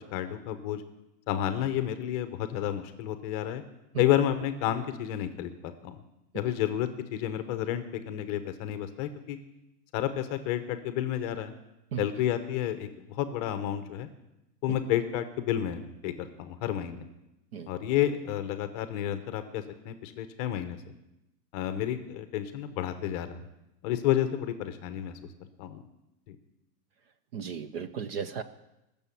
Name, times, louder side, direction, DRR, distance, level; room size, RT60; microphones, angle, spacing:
voice 1, 0.1-0.8 1.3-3.6 4.0-6.0 6.3-9.4 9.9-11.5 12.0-14.1 14.6-17.0 17.7-20.8 21.5-23.4 23.8-25.1 25.6-25.8 26.3-26.4, left 11 dB, 25° left, 10 dB, 0.8 m, -30 dB
voice 2, 27.3-28.4, right 7 dB, 35° right, 13 dB, 0.6 m, -35 dB
20.0 x 7.0 x 8.3 m, 0.92 s
hypercardioid pair, 155°, 50 cm